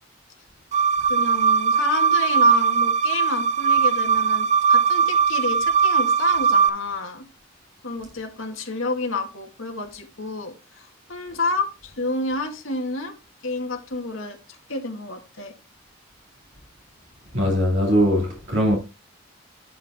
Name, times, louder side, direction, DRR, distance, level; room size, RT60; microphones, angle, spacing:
sound 1, 0.7-6.7, right 6 dB, 35° right, 0.3 m, -19 dB
voice 1, 1.0-7.2 7.8-13.1 13.4-15.5, left 3 dB, 80° left, 2.0 m, -29 dB
voice 2, 17.3-18.8, equal, 60° right, 2.4 m, -20 dB
11.0 x 4.8 x 3.6 m
head